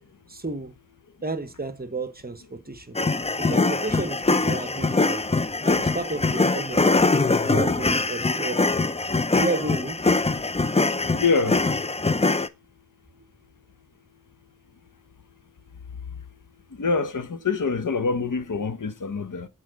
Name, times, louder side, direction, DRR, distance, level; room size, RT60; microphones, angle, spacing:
voice 1, 0.3-0.7 1.2-3.0 3.4-5.3 5.6-7.0 7.3-8.7 9.3-10.0, right 2 dB, 30° right, 1.0 m, -32 dB
sound 1, 2.9-12.5, left 3 dB, 20° left, 0.5 m, -23 dB
voice 2, 11.1-11.6 16.8-19.5, left 4 dB, 85° left, 0.9 m, -25 dB
7.2 x 4.6 x 6.3 m
wide cardioid pair, 65°, 30 cm